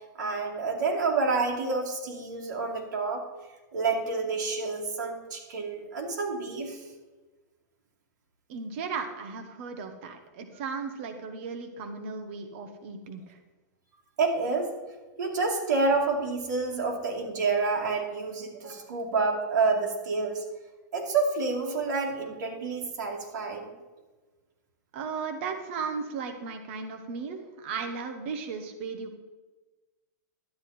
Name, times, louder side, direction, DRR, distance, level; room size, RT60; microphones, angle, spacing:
voice 1, 0.2-3.2 3.7-6.8 14.2-14.7 15.2-20.4 20.9-23.7, right 4 dB, 80° right, -1 dB, 2.4 m, -28 dB
voice 2, 8.5-13.4 24.9-29.1, right 5 dB, 40° right, 5 dB, 1.1 m, -36 dB
12.0 x 9.3 x 4.2 m, 1.2 s
supercardioid pair, 175°, 10 cm